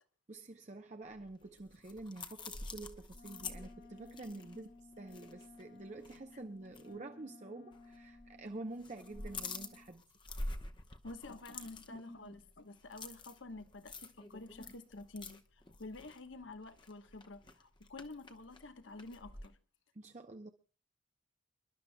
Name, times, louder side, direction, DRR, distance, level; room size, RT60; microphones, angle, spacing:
voice 1, 0.3-4.7 5.0-10.0 19.9-20.5, right 2 dB, 35° right, 0.6 m, -48 dB
sound 1, 1.2-5.7 6.0-6.2 6.7-6.9 7.7-8.3 8.6-19.5, left 2 dB, 25° left, 0.9 m, -47 dB
Wind instrument woodwind instrument, 3.1-9.9, left 3 dB, 45° left, 1.8 m, -57 dB
voice 2, 11.0-19.6, left 2 dB, 75° left, 1.1 m, -49 dB
28.5 x 11.5 x 2.2 m
head